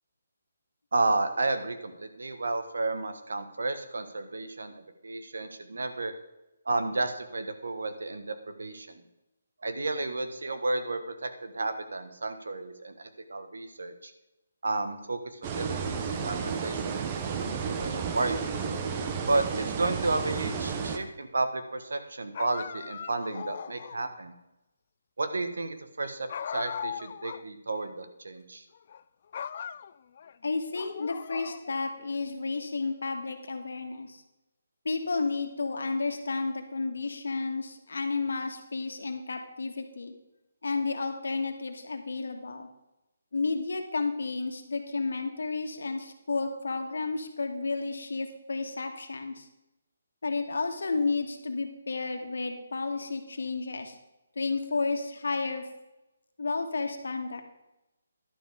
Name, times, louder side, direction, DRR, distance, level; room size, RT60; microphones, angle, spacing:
voice 1, 0.9-6.1 6.6-9.0 9.6-14.1 14.6-16.7 17.1-18.5 19.3-24.3 25.2-28.6, right 2 dB, 85° right, 9 dB, 1.5 m, -32 dB
sound 1, 15.4-21.0, right 6 dB, 20° right, 0.8 m, -32 dB
sound 2, 22.3-24.1 26.3-27.5 27.8-27.9 28.7-29.0 29.3-30.3 30.7-31.9, left 8 dB, 35° left, 0.3 m, -39 dB
voice 2, 30.4-34.2 34.8-40.1 40.6-42.7 43.3-49.5 50.2-54.0 54.3-55.7 56.4-57.4, left 3 dB, 75° left, 5 dB, 1.7 m, -32 dB
11.5 x 6.9 x 5.1 m, 0.95 s
hypercardioid pair, 170°, 0 cm